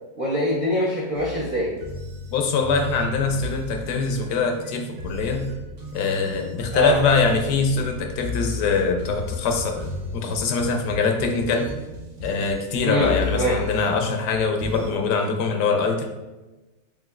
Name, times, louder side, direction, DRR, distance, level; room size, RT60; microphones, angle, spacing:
voice 1, 0.2-1.8 6.7-7.0 12.8-13.6, equal, 50° right, -6 dB, 0.6 m, -23 dB
sound 1, 1.2-14.9, left 3 dB, 80° right, 1.6 m, -35 dB
voice 2, 2.3-5.5 5.9-9.9 10.1-11.7 12.2-16.1, left 4 dB, 75° left, 4 dB, 1.1 m, -23 dB
5.1 x 3.5 x 2.3 m, 1.1 s
omnidirectional pair, 1.8 m